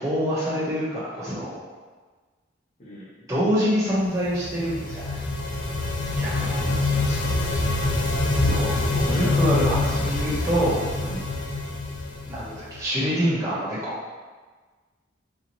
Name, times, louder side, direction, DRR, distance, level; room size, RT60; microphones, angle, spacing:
voice 1, 0.0-1.6 3.3-5.2 6.2-6.5 8.4-10.8 12.3-14.0, equal, 15° right, -11 dB, 1.0 m, -26 dB
sound 1, 4.1-12.9, left 2 dB, 65° left, 0.6 m, -25 dB
voice 2, 6.4-7.4 8.7-9.7 11.0-11.3, equal, 40° left, -7 dB, 1.1 m, -37 dB
4.0 x 2.7 x 3.0 m, 1.4 s
head